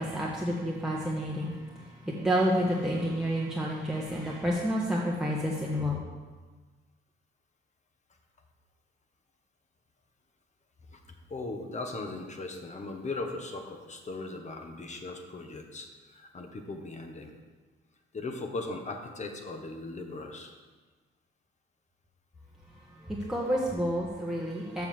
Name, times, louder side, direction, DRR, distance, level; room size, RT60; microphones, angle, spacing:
voice 1, 0.0-6.0 22.9-24.9, equal, 5° right, -4 dB, 1.3 m, -30 dB
voice 2, 11.3-17.3 18.1-20.5, left 3 dB, 35° left, 4 dB, 1.4 m, -38 dB
7.2 x 5.8 x 7.1 m, 1.4 s
cardioid pair, 90°, 20 cm